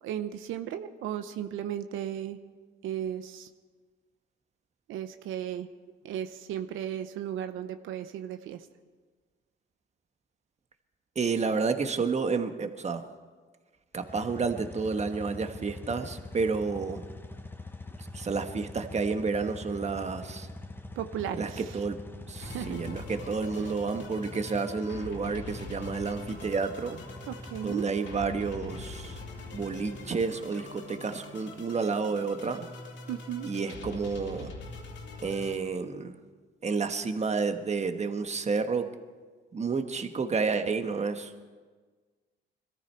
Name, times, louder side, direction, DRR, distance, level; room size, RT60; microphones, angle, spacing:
voice 1, 0.0-2.4 2.8-3.5 4.9-5.7 6.0-8.7 21.0-21.8 22.4-22.9 23.6-23.7 27.3-27.9 33.1-33.5, right 10 dB, 85° right, 9 dB, 0.8 m, -35 dB
voice 2, 11.1-13.0 13.9-17.0 18.1-20.5 21.4-22.0 22.3-27.0 27.6-29.2 29.5-32.7 33.4-34.5 35.2-36.2 36.6-38.9 39.5-41.3, right 4 dB, 35° right, 7 dB, 1.3 m, -30 dB
sound 1, 14.0-30.6, left 2 dB, 10° left, 0.9 m, -45 dB
sound 2, 22.4-35.6, left 3 dB, 70° left, 2.8 m, -43 dB
22.0 x 14.0 x 4.4 m, 1.4 s
cardioid pair, 90°, 20 cm